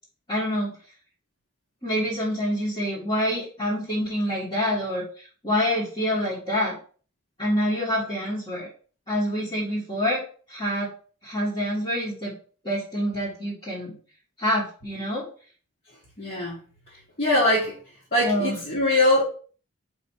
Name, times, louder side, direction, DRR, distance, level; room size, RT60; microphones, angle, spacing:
voice 1, 0.3-0.7 1.8-6.8 7.4-8.7 9.1-10.2 10.5-10.9 11.2-12.4 12.6-14.0 14.4-15.3 18.2-18.6, equal, 25° left, -8 dB, 1.6 m, -26 dB
voice 2, 16.2-16.6 16.9-17.8 18.1-19.2, left 1 dB, 45° left, -8 dB, 1.8 m, -22 dB
4.8 x 4.3 x 4.6 m, 0.41 s
head